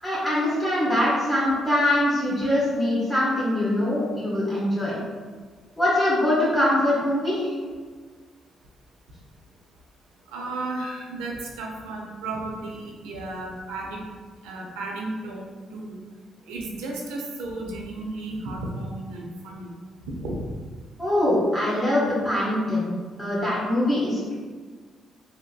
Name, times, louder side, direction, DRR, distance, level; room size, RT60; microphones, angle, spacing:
voice 1, 0.0-4.9 5.8-7.5 21.0-22.9 23.2-24.3, left 1 dB, 15° left, -9 dB, 1.3 m, -23 dB
voice 2, 10.3-14.0 14.4-16.0 16.5-19.7 20.1-20.4, right 2 dB, 85° right, -1 dB, 0.5 m, -34 dB
3.3 x 2.5 x 2.2 m, 1.5 s
supercardioid pair, 55°, 0 cm